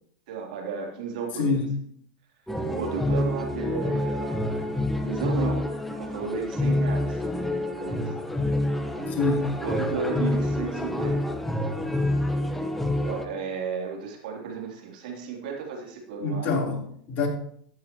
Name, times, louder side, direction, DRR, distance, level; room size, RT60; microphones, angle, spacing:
voice 1, 0.3-1.6 2.7-4.7 5.0-7.2 7.7-8.1 8.8-9.1 9.6-11.2 13.0-16.5, right 5 dB, 70° right, 3.3 m, -33 dB
voice 2, 1.3-1.8 9.1-9.6 16.2-17.3, left 4 dB, 45° left, 3.8 m, -26 dB
sound 1, 2.5-13.3, left 1 dB, 5° left, 1.2 m, -27 dB
14.0 x 9.9 x 3.1 m
hypercardioid pair, 100°, 5 cm